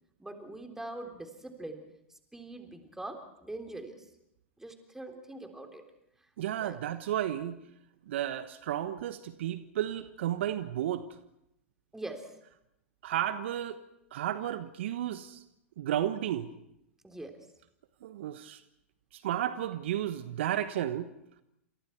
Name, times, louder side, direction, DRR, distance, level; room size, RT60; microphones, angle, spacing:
voice 1, 0.2-1.8 2.3-4.1 4.6-5.8 6.6-6.8 11.9-12.3 17.0-17.4, right 2 dB, 5° right, 4 dB, 3.6 m, -43 dB
voice 2, 6.4-7.6 8.1-11.1 13.0-13.8 14.1-15.4 15.8-16.5 18.0-18.6 19.1-21.1, right 11 dB, 60° right, 12 dB, 1.2 m, -33 dB
29.0 x 27.0 x 4.6 m, 0.81 s
figure-of-eight pair, 95°, 7 cm